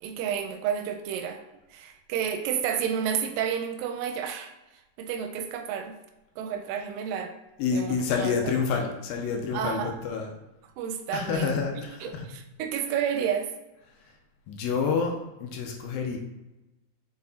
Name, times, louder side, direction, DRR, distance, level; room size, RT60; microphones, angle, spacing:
voice 1, 0.0-1.4 1.7-4.5 5.0-5.9 6.4-7.4 7.7-8.4 9.5-9.9 10.8-11.5 12.0-13.5, right 8 dB, 80° right, 6 dB, 2.0 m, -30 dB
voice 2, 7.6-10.4 11.1-12.3 14.5-16.2, left 5 dB, 80° left, 2 dB, 2.4 m, -28 dB
6.4 x 4.2 x 4.1 m, 0.99 s
omnidirectional pair, 4.4 m